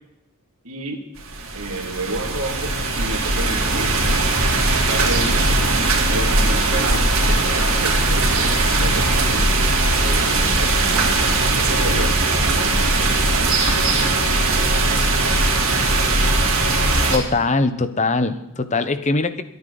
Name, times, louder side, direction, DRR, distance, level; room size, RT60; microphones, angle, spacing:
voice 1, 0.6-1.0 1.5-9.5 9.9-13.6, right 2 dB, 85° right, 2 dB, 2.3 m, -31 dB
sound 1, 1.2-17.2, right 2 dB, 60° right, 3.3 m, -19 dB
voice 2, 17.1-19.4, left 3 dB, 30° left, 12 dB, 0.9 m, -21 dB
23.0 x 9.6 x 4.0 m, 0.88 s
head